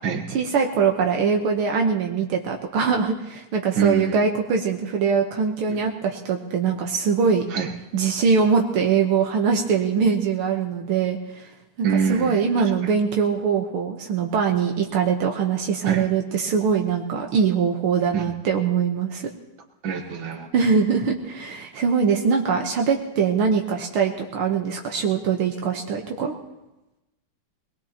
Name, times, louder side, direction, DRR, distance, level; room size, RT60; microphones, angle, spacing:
voice 1, 0.3-7.4 7.9-11.5 11.8-19.3 20.5-26.4, right 6 dB, 80° right, 2 dB, 2.0 m, -22 dB
voice 2, 3.8-4.2 7.5-7.7 11.8-12.4 15.9-16.0 18.1-18.3 19.8-20.5, right 6 dB, 65° right, 2 dB, 2.1 m, -24 dB
21.5 x 20.0 x 2.9 m, 0.99 s
omnidirectional pair, 2.3 m